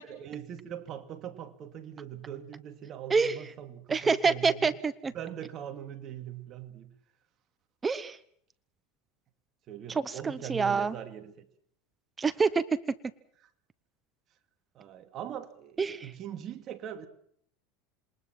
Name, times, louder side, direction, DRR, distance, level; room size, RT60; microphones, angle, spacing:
voice 1, 0.0-4.8 5.1-7.0 9.7-11.5 13.4-13.5 14.7-17.1, right 10 dB, 40° right, 2.5 m, -41 dB
voice 2, 3.9-5.1 7.8-8.2 10.0-10.9 12.2-12.6 15.8-16.1, right 5 dB, 20° right, 1.0 m, -27 dB
27.0 x 22.0 x 6.0 m
supercardioid pair, 125°, 0 cm